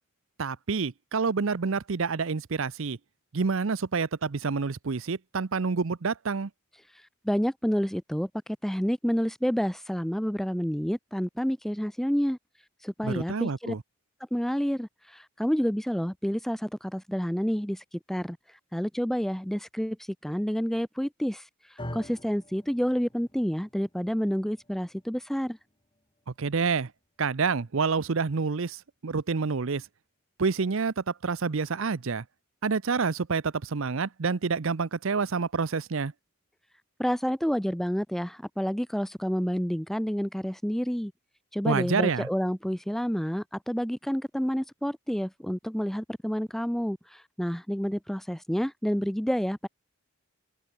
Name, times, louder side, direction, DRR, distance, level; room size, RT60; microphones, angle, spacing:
voice 1, 0.4-3.0 3.3-6.5 13.0-13.8 26.4-26.9 27.2-28.8 29.0-29.8 30.4-32.2 32.6-36.1 41.7-42.3, right 4 dB, 65° right, 0.6 m, -28 dB
voice 2, 7.2-8.3 8.6-12.4 12.8-13.7 14.3-18.4 18.7-20.0 20.2-21.5 21.9-25.6 37.0-41.1 41.5-49.7, equal, ahead, 0.4 m, -29 dB
sound 1, 21.8-30.0, left 1 dB, 20° left, 5.7 m, -48 dB
head